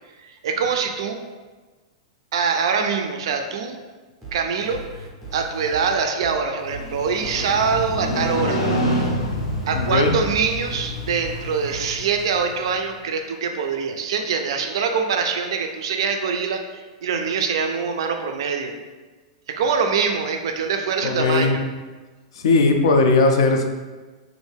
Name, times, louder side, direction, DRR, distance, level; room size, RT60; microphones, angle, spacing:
voice 1, 0.2-1.2 2.3-3.8 4.3-5.1 5.3-8.6 9.7-18.7 19.5-21.6, right 5 dB, 55° right, 5 dB, 0.4 m, -24 dB
sound 1, 4.2-12.0, right 1 dB, ahead, 0.6 m, -38 dB
Motorcycle, 6.7-12.7, equal, 85° left, 0.9 m, -27 dB
voice 2, 9.7-10.2 21.0-21.6 22.3-23.6, left 3 dB, 60° left, 4 dB, 0.4 m, -18 dB
3.1 x 2.5 x 3.3 m, 1.3 s
supercardioid pair, 180°, 3 cm